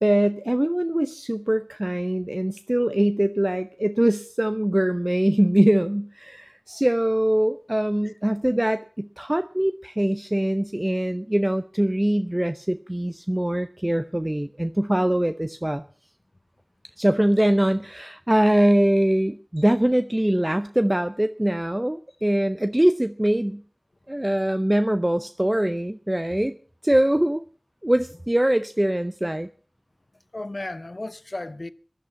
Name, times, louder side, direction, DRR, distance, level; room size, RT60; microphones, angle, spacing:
voice 1, 0.0-15.8 17.0-23.6 24.1-26.5 26.8-27.4 27.8-29.5, right 1 dB, 25° right, 0.6 m, -22 dB
voice 2, 30.1-31.7, left 2 dB, 60° left, 0.7 m, -35 dB
15.0 x 11.0 x 6.9 m
wide cardioid pair, 40°, 0 cm